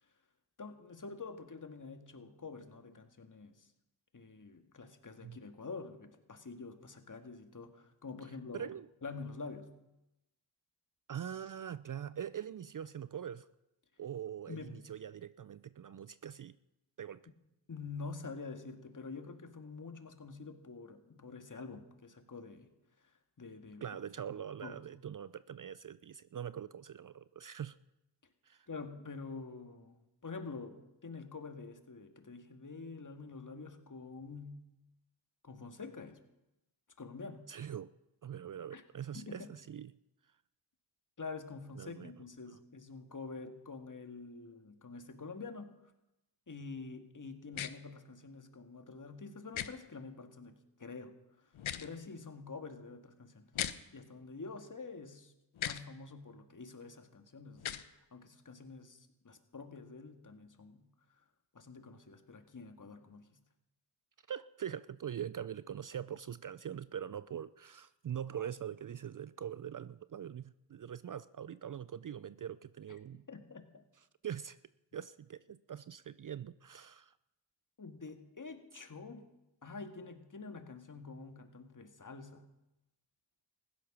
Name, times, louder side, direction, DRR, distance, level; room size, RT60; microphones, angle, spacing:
voice 1, 0.6-3.7 4.1-8.7 9.0-9.8 14.5-14.9 17.7-22.7 23.0-24.0 24.6-24.8 28.7-34.7 35.4-36.2 37.0-37.5 38.7-38.8 39.1-39.5 41.2-45.9 46.5-51.5 51.8-53.5 53.9-55.3 55.6-60.9 61.5-63.4 73.3-73.8 77.8-79.3 79.6-82.5, left 4 dB, 40° left, 6 dB, 2.0 m, -47 dB
voice 2, 8.5-8.9 11.1-13.5 14.0-16.6 17.0-17.2 23.8-27.8 28.4-28.7 37.5-37.9 38.2-39.9 41.8-42.1 64.3-73.2 74.2-74.6 74.9-77.1, right 9 dB, 45° right, 17 dB, 0.5 m, -43 dB
sound 1, 47.5-47.7 49.5-49.7 51.5-51.9 53.5-53.7 55.5-55.8 57.6-57.8, left 10 dB, 75° left, 0.9 m, -37 dB
15.5 x 11.5 x 6.1 m, 0.93 s
cardioid pair, 50°, 48 cm